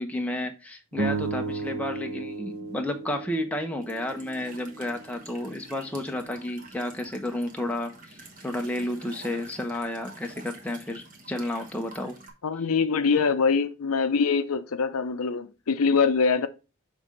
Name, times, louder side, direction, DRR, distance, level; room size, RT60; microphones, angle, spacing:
voice 1, 0.0-12.2, left 1 dB, 5° left, 0.7 m, -32 dB
sound 1, 0.9-5.4, right 3 dB, 70° right, 1.3 m, -34 dB
Walk footsteps / Chirp tweet / Stream, 3.8-12.3, right 2 dB, 35° right, 1.2 m, -48 dB
voice 2, 12.4-16.5, left 5 dB, 80° left, 0.6 m, -24 dB
6.0 x 3.6 x 5.1 m
head